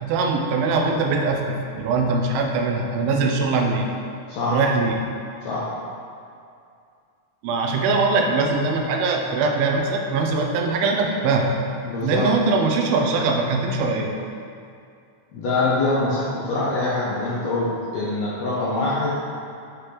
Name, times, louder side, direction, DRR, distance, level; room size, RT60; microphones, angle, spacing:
voice 1, 0.0-3.9 4.5-5.0 7.4-11.5 12.0-14.1, right 3 dB, 90° right, 2 dB, 2.5 m, -22 dB
voice 2, 11.8-12.3 15.3-19.1, left 2 dB, 80° left, -7 dB, 1.5 m, -24 dB
7.7 x 4.4 x 3.3 m, 2.4 s
omnidirectional pair, 4.1 m